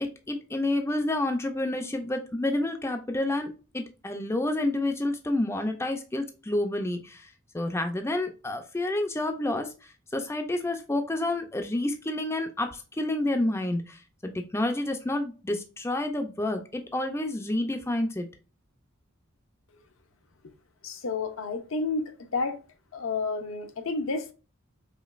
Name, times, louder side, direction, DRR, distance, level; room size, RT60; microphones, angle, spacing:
voice 1, 0.3-7.3 7.5-18.3, left 1 dB, 15° left, 0.4 m, -29 dB
voice 2, 20.8-22.0 22.3-22.6 22.9-24.3, left 3 dB, 70° left, 0.6 m, -30 dB
5.0 x 2.9 x 2.4 m
head